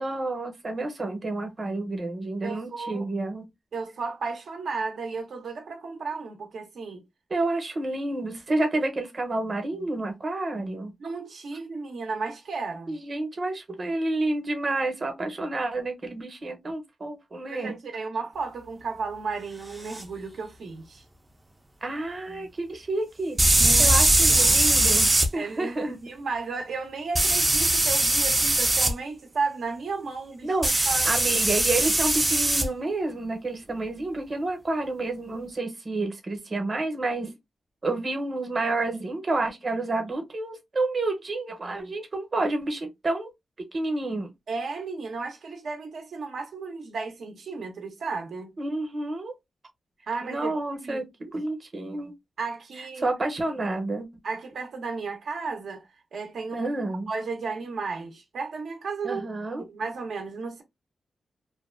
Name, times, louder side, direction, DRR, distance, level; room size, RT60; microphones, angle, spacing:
voice 1, 0.0-3.4 7.3-10.9 12.9-17.8 21.8-26.0 30.4-37.3 37.8-43.3 43.7-44.3 48.6-49.3 50.2-51.0 51.3-52.1 53.0-54.1 56.5-57.1 59.0-59.6, right 2 dB, 35° right, 0.7 m, -29 dB
voice 2, 2.4-3.1 3.7-7.0 11.0-13.0 17.5-21.0 23.6-23.9 24.3-24.6 25.3-30.5 30.9-31.1 44.5-48.5 50.1-50.5 50.8-51.3 52.4-53.1 54.2-55.8 56.1-56.7 57.1-59.2 59.7-60.6, right 4 dB, 75° right, 0.5 m, -34 dB
sound 1, 19.9-20.0 23.4-25.3 27.1-28.9 30.6-32.7, right 1 dB, 15° right, 0.3 m, -21 dB
2.5 x 2.2 x 2.3 m
wide cardioid pair, 150°, 0 cm